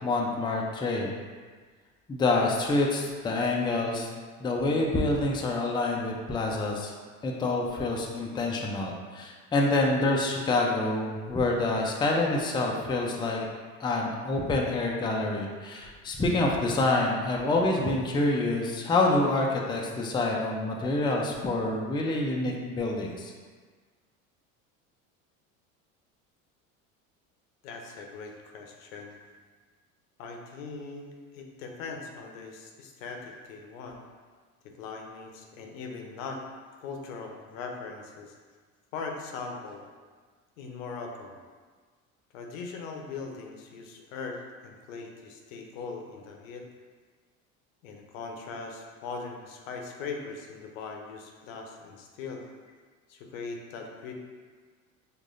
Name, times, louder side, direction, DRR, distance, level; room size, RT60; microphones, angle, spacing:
voice 1, 0.0-1.1 2.1-4.1 4.4-6.9 7.2-13.5 13.8-23.3, left 2 dB, 10° left, -1 dB, 0.4 m, -27 dB
voice 2, 27.6-29.2 30.2-34.0 34.6-36.4 36.8-38.3 38.9-39.9 40.6-41.4 42.3-46.6 47.8-52.4 53.1-54.1, left 4 dB, 75° left, 2 dB, 0.7 m, -40 dB
4.7 x 2.5 x 2.5 m, 1.5 s
hypercardioid pair, 80°, 41 cm